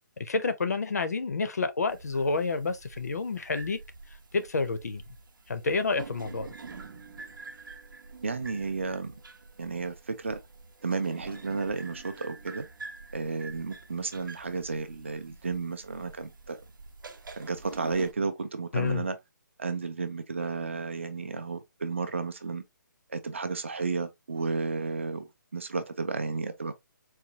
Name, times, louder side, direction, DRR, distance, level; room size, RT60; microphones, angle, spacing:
voice 1, 0.2-3.8 4.3-5.0 5.5-6.5 18.7-19.0, left 4 dB, 55° left, 0.5 m, -29 dB
sound 1, 1.9-18.1, right 4 dB, 80° right, 0.8 m, -47 dB
voice 2, 8.2-9.1 9.6-10.4 10.8-12.7 13.1-16.6 17.3-19.2 19.6-22.6 23.1-26.7, right 4 dB, 35° right, 0.5 m, -32 dB
4.0 x 2.3 x 2.7 m
hypercardioid pair, 180°, 11 cm